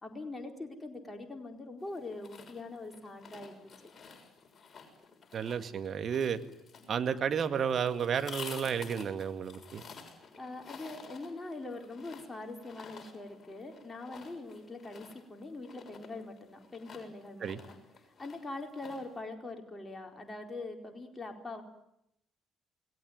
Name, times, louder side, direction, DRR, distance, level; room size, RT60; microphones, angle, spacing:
voice 1, 0.0-3.7 10.4-17.8 18.0-21.6, left 2 dB, 20° left, 3 dB, 4.4 m, -43 dB
sound 1, 1.8-19.2, left 5 dB, 35° left, 6.8 m, -51 dB
voice 2, 5.3-6.4 6.9-9.8 17.4-17.6, right 7 dB, 45° right, 9 dB, 2.0 m, -32 dB
28.5 x 19.0 x 9.5 m, 0.81 s
figure-of-eight pair, 50°, 0 cm